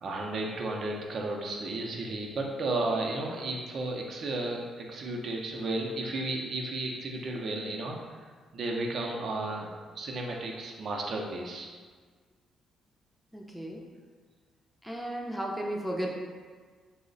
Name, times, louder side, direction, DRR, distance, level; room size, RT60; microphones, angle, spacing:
voice 1, 0.0-8.2 8.5-9.7 9.9-11.7, right 2 dB, 55° right, 0 dB, 0.5 m, -33 dB
voice 2, 13.3-13.8 14.8-16.1, right 1 dB, ahead, -1 dB, 0.5 m, -34 dB
3.2 x 2.0 x 3.8 m, 1.5 s
cardioid pair, 90°, 0 cm